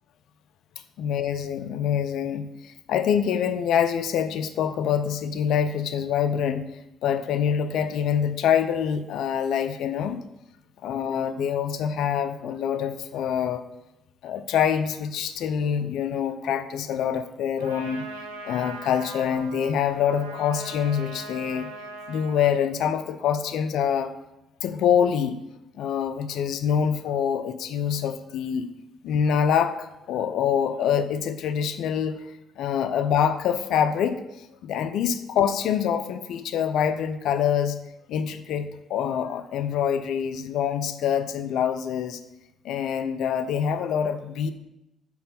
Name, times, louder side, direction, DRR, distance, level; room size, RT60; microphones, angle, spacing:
voice 1, 1.0-6.7 7.0-10.2 10.8-13.6 14.2-18.1 18.4-21.7 22.1-24.1 24.6-25.4 25.7-28.7 29.0-32.2 32.6-34.2 34.6-37.8 38.1-42.2 42.6-44.5, left 8 dB, 65° left, 10 dB, 0.4 m, -25 dB
Trumpet, 17.6-22.6, right 3 dB, 90° right, 0.6 m, -40 dB
5.0 x 4.7 x 5.2 m, 0.89 s
hypercardioid pair, 50°, 0 cm